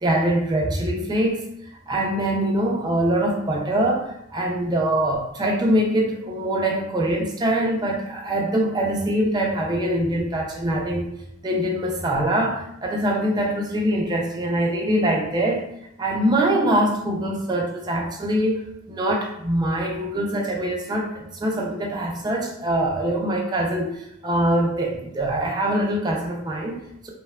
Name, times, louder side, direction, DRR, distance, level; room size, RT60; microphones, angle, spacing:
voice 1, 0.0-1.4 1.9-11.1 11.4-15.6 16.0-18.6 18.9-27.1, right 1 dB, 20° right, 0 dB, 0.3 m, -23 dB
2.6 x 2.1 x 2.2 m, 0.78 s
head